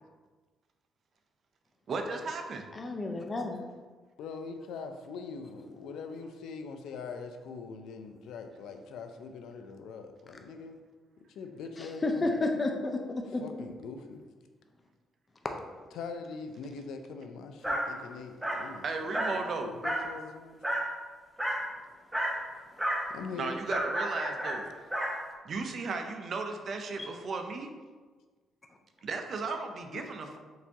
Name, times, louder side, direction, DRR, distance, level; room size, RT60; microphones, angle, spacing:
voice 1, 1.9-2.7 18.8-19.7 23.4-24.7 25.4-27.7 29.0-30.4, right 4 dB, 55° right, 5 dB, 0.5 m, -35 dB
voice 2, 2.7-3.6 11.8-13.0 13.3-13.4 27.0-27.1, left 2 dB, 30° left, 3 dB, 0.5 m, -31 dB
voice 3, 4.2-10.8 11.3-12.3 13.4-14.2 15.9-18.8 19.6-20.6 23.1-23.5 27.1-27.2 29.9-30.1, left 5 dB, 80° left, 6 dB, 0.4 m, -42 dB
Dog, 17.6-17.9 18.4-18.7 19.1-19.4 19.8-20.1 20.6-20.9 21.4-21.7 22.1-22.4 22.8-23.1 23.7-25.2, right 1 dB, 5° right, 0.8 m, -31 dB
4.8 x 2.7 x 3.5 m, 1.4 s
cardioid pair, 90°, 0 cm